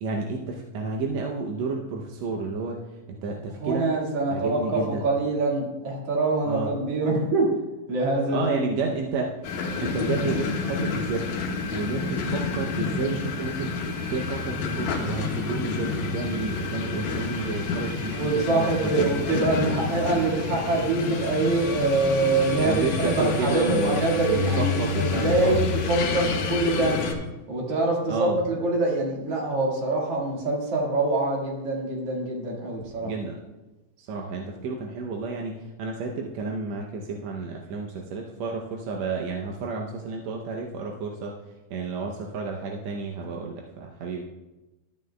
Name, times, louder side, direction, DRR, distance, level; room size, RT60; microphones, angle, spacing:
voice 1, 0.0-2.8 3.1-3.9 4.3-5.0 6.5-6.7 8.3-9.3 9.8-11.3 11.7-18.5 18.8-19.1 22.7-24.0 24.3-25.6 28.1-28.4 33.0-33.4 34.0-41.4 41.7-44.2, right 4 dB, 75° right, 0 dB, 1.7 m, -31 dB
voice 2, 3.6-7.5 7.9-8.7 18.1-27.0 27.5-33.1, right 2 dB, 50° right, -3 dB, 2.6 m, -25 dB
sound 1, 9.4-27.1, left 4 dB, 90° left, 2.7 m, -29 dB
13.0 x 10.0 x 2.2 m, 1.1 s
omnidirectional pair, 3.6 m